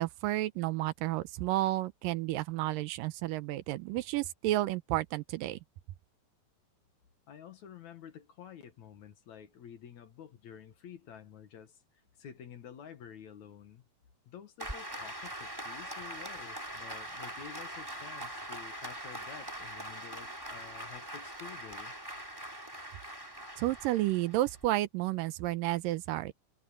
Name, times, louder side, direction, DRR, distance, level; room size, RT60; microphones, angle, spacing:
voice 1, 0.0-5.6 23.6-26.3, right 16 dB, 80° right, 2.3 m, -31 dB
voice 2, 7.3-11.8 12.2-13.8 14.3-21.9, left 8 dB, 60° left, 2.5 m, -50 dB
Applause, 14.6-24.7, right 1 dB, 5° right, 3.1 m, -42 dB
omnidirectional pair, 4.1 m